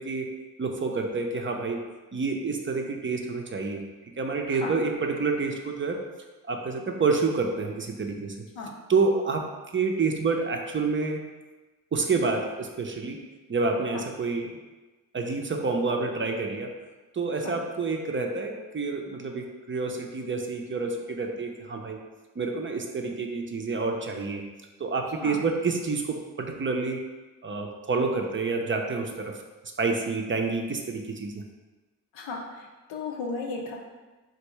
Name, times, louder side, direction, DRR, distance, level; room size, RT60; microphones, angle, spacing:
voice 1, 0.0-1.9 2.1-3.8 4.2-6.0 6.4-8.4 8.9-11.3 11.9-13.2 13.5-14.5 15.1-16.7 17.1-22.0 22.4-24.4 24.8-27.0 27.4-29.3 29.8-31.4, right 4 dB, 30° right, 2 dB, 0.5 m, -28 dB
voice 2, 32.1-33.8, left 3 dB, 80° left, 0 dB, 0.7 m, -35 dB
3.3 x 2.6 x 3.1 m, 1.2 s
hypercardioid pair, 40°, 43 cm